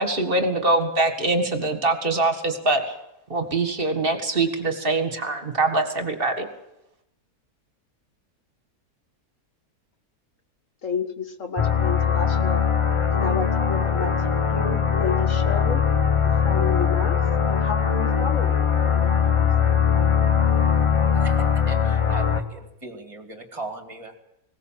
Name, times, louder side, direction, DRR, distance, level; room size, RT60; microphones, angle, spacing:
voice 1, 0.0-2.9 3.3-6.5, right 2 dB, 35° right, 6 dB, 2.1 m, -23 dB
voice 2, 10.8-12.6 13.1-15.9 16.4-17.2 17.5-19.5, left 5 dB, 55° left, 7 dB, 2.1 m, -31 dB
sound 1, 11.6-22.4, left 7 dB, 25° left, 1.0 m, -21 dB
voice 3, 21.2-24.1, right 3 dB, 20° right, 4 dB, 2.5 m, -38 dB
19.5 x 17.5 x 7.5 m, 0.86 s
omnidirectional pair, 1.6 m